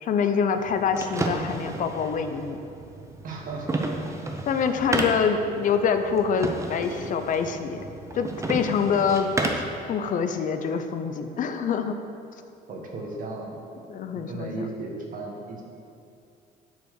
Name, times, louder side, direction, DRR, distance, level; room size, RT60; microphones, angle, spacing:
voice 1, 0.0-2.6 4.5-7.8 8.1-9.6 9.9-12.0 13.9-14.5, left 6 dB, 50° left, 8 dB, 0.5 m, -25 dB
sound 1, 0.5-9.8, right 2 dB, 15° right, 0.8 m, -32 dB
voice 2, 3.2-3.9 5.0-5.1 12.7-13.6 14.1-15.6, right 2 dB, 55° right, 0 dB, 1.6 m, -35 dB
8.0 x 4.5 x 6.5 m, 2.5 s
cardioid pair, 110°, 17 cm